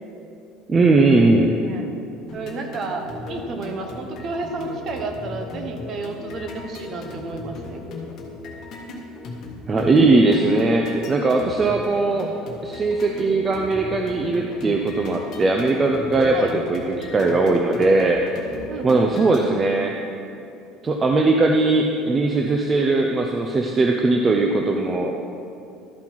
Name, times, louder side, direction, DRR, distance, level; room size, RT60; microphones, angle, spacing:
voice 1, 0.7-1.5 9.7-12.3 12.6-18.2 18.8-20.0 20.8-25.1, right 3 dB, 20° right, 2 dB, 0.5 m, -19 dB
voice 2, 1.4-1.9 2.3-7.8 16.3-16.5 18.7-19.3, right 3 dB, 40° right, 4 dB, 1.0 m, -31 dB
sound 1, 2.3-19.4, left 2 dB, 45° left, 1.4 m, -37 dB
12.5 x 5.5 x 4.6 m, 2.7 s
cardioid pair, 145°, 0 cm